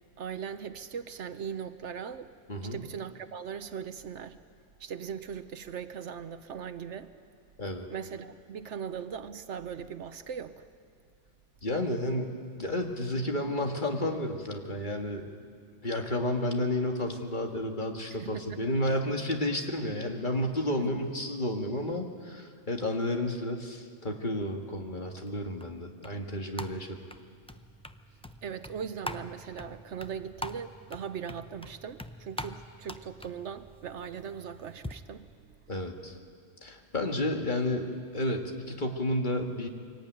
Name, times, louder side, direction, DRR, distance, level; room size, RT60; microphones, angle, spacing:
voice 1, 0.2-2.3 2.6-4.4 4.8-7.1 7.9-10.7 18.2-18.7 20.8-21.1 28.4-35.6, right 7 dB, 70° right, 11 dB, 1.1 m, -39 dB
voice 2, 11.6-12.3 12.6-15.3 15.8-27.0 35.7-36.2 36.6-39.7, left 1 dB, 40° left, 3 dB, 1.9 m, -31 dB
sound 1, 25.3-34.9, left 1 dB, 5° left, 0.4 m, -44 dB
23.5 x 17.5 x 9.2 m, 2.1 s
omnidirectional pair, 1.3 m